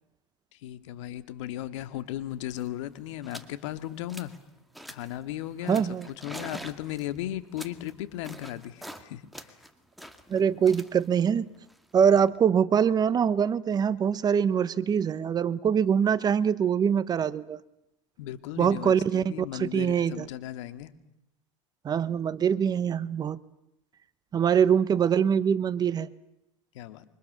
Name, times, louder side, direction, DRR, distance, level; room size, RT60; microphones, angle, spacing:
voice 1, 0.5-4.3 4.9-9.5 18.2-20.9 26.7-27.0, left 13 dB, 70° left, 2.2 m, -36 dB
sound 1, 2.2-2.3 2.5-2.7 3.2-3.5 3.9-4.4 4.7-5.2 5.7-9.0 9.3-12.4, equal, ahead, 2.2 m, -45 dB
voice 2, 5.7-6.1 10.3-11.5 11.9-17.6 18.6-20.3 21.8-23.4 24.3-26.1, right 7 dB, 25° right, 1.0 m, -24 dB
28.0 x 25.0 x 6.9 m
supercardioid pair, 125°, 16 cm